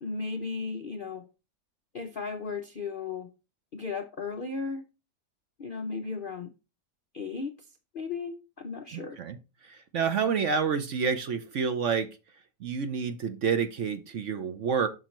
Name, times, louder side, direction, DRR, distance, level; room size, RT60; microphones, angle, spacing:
voice 1, 0.0-1.3 1.9-3.3 3.7-4.8 5.6-6.5 7.1-7.5 7.9-9.2, left 4 dB, 55° left, 0.6 m, -35 dB
voice 2, 8.9-9.4 9.6-12.1 12.6-14.9, right 6 dB, 55° right, 1.0 m, -28 dB
8.1 x 6.3 x 3.0 m
omnidirectional pair, 1.8 m